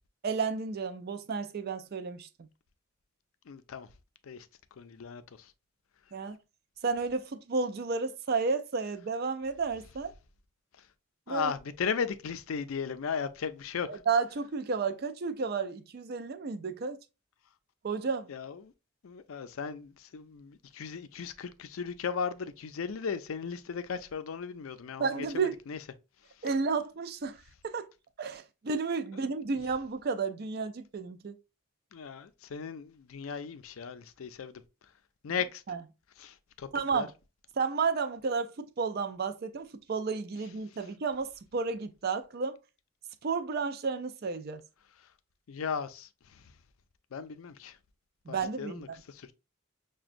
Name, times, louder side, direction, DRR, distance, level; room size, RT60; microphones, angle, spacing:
voice 1, 0.2-2.5 6.1-6.4 6.8-10.1 11.3-11.5 13.9-17.0 17.8-18.3 25.0-25.5 26.4-27.4 27.6-27.9 28.2-31.3 35.7-35.8 36.7-37.1 37.6-42.6 43.2-44.6 48.3-48.8, right 4 dB, 50° right, 0.4 m, -32 dB
voice 2, 3.5-3.9 4.2-4.5 4.8-5.5 10.8-10.9 11.3-14.0 18.3-18.7 19.0-25.8 26.4-26.5 29.1-29.6 31.9-34.6 35.2-35.6 36.2-37.1 45.0-45.1 45.5-46.5 47.1-47.8 48.3-49.3, left 6 dB, 80° left, 0.4 m, -37 dB
5.9 x 2.2 x 2.5 m
head